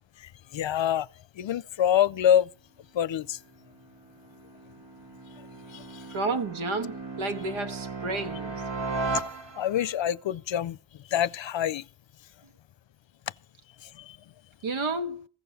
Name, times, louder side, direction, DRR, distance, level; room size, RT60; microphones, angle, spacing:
voice 1, 0.5-1.1 1.4-2.5 2.9-3.4 5.7-6.0 9.6-10.8 11.1-11.8 14.0-14.2, left 10 dB, 70° left, 0.6 m, -25 dB
sound 1, 3.5-9.9, right 3 dB, 60° right, 2.0 m, -36 dB
voice 2, 6.1-8.6 14.6-15.2, right 3 dB, 80° right, 1.4 m, -31 dB
15.5 x 7.0 x 7.0 m
wide cardioid pair, 120°, 48 cm